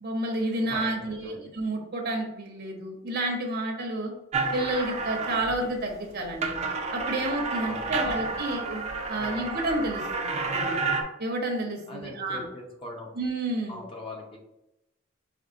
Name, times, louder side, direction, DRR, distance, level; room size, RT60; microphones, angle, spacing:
voice 1, 0.0-4.1 4.5-6.6 6.9-10.8 11.2-12.4 13.2-13.8, right 1 dB, 55° right, 1 dB, 0.9 m, -30 dB
voice 2, 0.6-1.5 7.6-8.4 9.2-9.5 11.9-13.1 13.7-14.4, left 2 dB, 25° left, 0 dB, 0.8 m, -42 dB
sound 1, 4.3-5.8 6.2-11.0, right 4 dB, 35° right, 0.5 m, -30 dB
5.3 x 3.4 x 2.6 m, 0.88 s
head